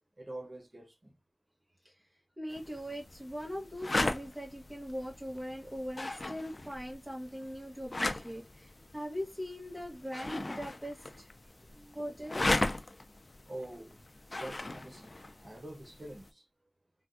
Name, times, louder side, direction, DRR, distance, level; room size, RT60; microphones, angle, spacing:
voice 1, 0.2-1.2 11.6-12.1 13.4-14.0 14.3-16.5, right 1 dB, 65° right, 0.9 m, -46 dB
voice 2, 2.4-11.3 11.9-12.5, equal, 15° right, 1.0 m, -40 dB
sound 1, 2.5-16.3, left 2 dB, 65° left, 0.4 m, -38 dB
3.4 x 2.2 x 2.5 m
wide cardioid pair, 50°, 0 cm